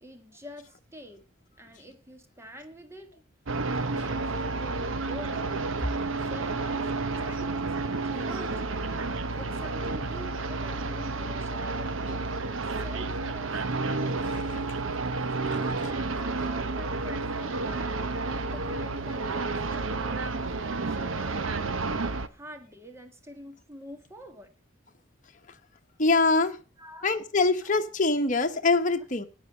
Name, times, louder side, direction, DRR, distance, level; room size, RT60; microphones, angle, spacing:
voice 1, 0.0-1.3 1.6-3.2 3.7-6.0 6.2-8.8 9.4-12.3 12.8-13.6 15.4-21.6 22.3-24.5 26.8-27.1, equal, 15° right, 1.6 m, -46 dB
sound 1, 3.5-22.3, right 3 dB, 75° right, 0.9 m, -31 dB
voice 2, 14.2-14.6 15.4-15.6 26.0-26.6 27.0-29.3, left 3 dB, 40° left, 1.2 m, -24 dB
12.0 x 9.8 x 5.7 m
head